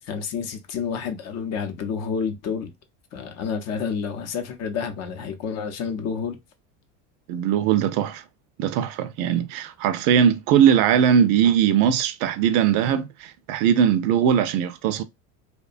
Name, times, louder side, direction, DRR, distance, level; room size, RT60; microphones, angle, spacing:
voice 1, 0.1-2.7 3.1-6.4, left 6 dB, 45° left, 0.6 m, -29 dB
voice 2, 7.3-8.2 8.6-15.0, right 8 dB, 60° right, 0.5 m, -20 dB
2.8 x 2.2 x 2.4 m
supercardioid pair, 130°, 38 cm